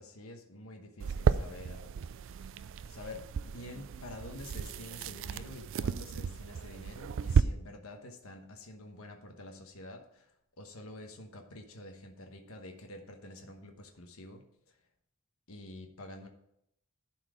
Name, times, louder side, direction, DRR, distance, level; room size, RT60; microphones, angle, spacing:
voice 1, 0.0-1.9 2.9-14.8 15.5-16.3, left 1 dB, 75° left, 4 dB, 1.1 m, -48 dB
sound 1, 1.0-7.4, right 6 dB, 60° right, 0.4 m, -33 dB
11.5 x 4.5 x 5.0 m, 0.76 s
head